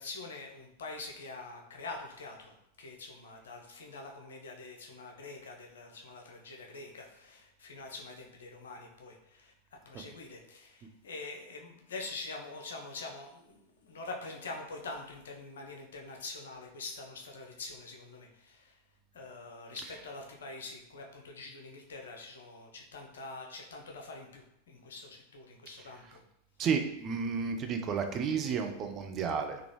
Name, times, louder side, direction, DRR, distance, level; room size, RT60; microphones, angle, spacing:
voice 1, 0.0-9.5 9.9-18.8 19.1-26.2, left 3 dB, 65° left, 1 dB, 0.6 m, -45 dB
voice 2, 26.6-29.6, right 6 dB, 30° right, 5 dB, 0.4 m, -32 dB
3.7 x 2.3 x 3.1 m, 0.79 s
figure-of-eight pair, 90°, 0 cm